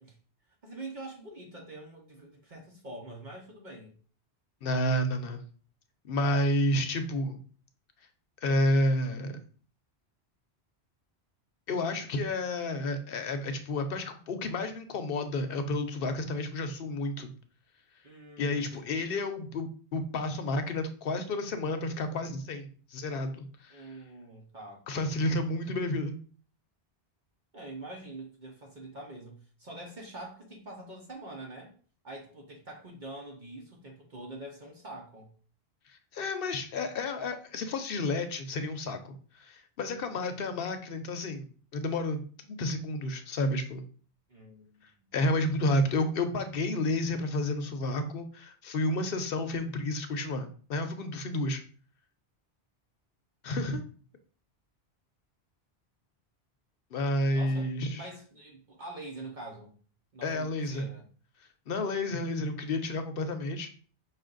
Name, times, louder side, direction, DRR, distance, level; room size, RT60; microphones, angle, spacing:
voice 1, 0.6-3.9 6.1-6.2 18.0-19.0 23.7-24.8 27.5-31.7 32.0-35.3 44.3-45.1 57.3-59.7 60.1-61.0, right 2 dB, 50° right, -1 dB, 0.9 m, -45 dB
voice 2, 4.6-5.4 6.1-7.4 8.4-9.3 11.7-17.3 18.4-23.9 24.9-26.1 35.9-41.5 41.7-42.2 42.5-43.8 45.1-51.6 53.4-53.8 56.9-58.0 60.2-60.9 61.7-63.7, left 1 dB, 65° left, 8 dB, 0.8 m, -30 dB
5.5 x 2.5 x 3.8 m, 0.41 s
omnidirectional pair, 1.1 m